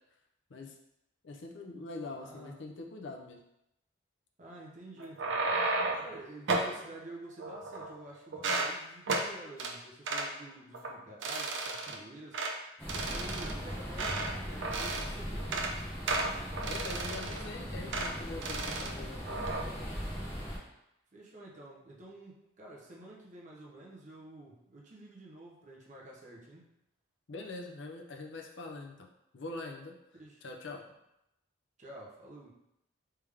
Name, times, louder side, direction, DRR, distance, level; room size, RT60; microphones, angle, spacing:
voice 1, 1.2-3.4 16.7-20.0 27.3-29.1 29.3-29.9 30.4-30.8, left 3 dB, 65° left, 1 dB, 0.6 m, -43 dB
voice 2, 2.1-2.6 4.4-5.7 6.0-12.5 12.9-15.7 21.1-26.6 30.1-30.4 31.8-32.5, right 1 dB, 40° right, -3 dB, 0.7 m, -50 dB
sound 1, 5.0-6.1 6.5-6.7 7.4-8.0 8.3-8.7 9.1-9.3 9.6-9.7 10.1-10.3 10.7-10.9 11.2-12.0 12.3-12.5 12.9-14.3 14.6-15.1 15.4-15.7 16.1-17.5 17.9-18.1 18.4-18.9 19.3-19.6, right 3 dB, 70° right, 0.5 m, -33 dB
sound 2, 12.8-20.6, equal, 10° left, 1.1 m, -39 dB
3.4 x 3.4 x 3.4 m, 0.85 s
head